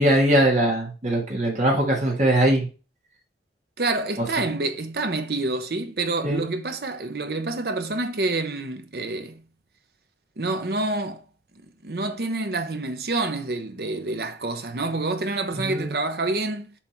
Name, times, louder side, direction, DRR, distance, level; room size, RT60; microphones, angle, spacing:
voice 1, 0.0-2.7 4.2-4.3 6.2-6.5 15.5-15.9, right 1 dB, 40° right, 1.7 m, -21 dB
voice 2, 3.8-9.4 10.4-11.2 11.8-16.7, right 2 dB, 60° right, 0.8 m, -27 dB
7.3 x 3.4 x 4.5 m
head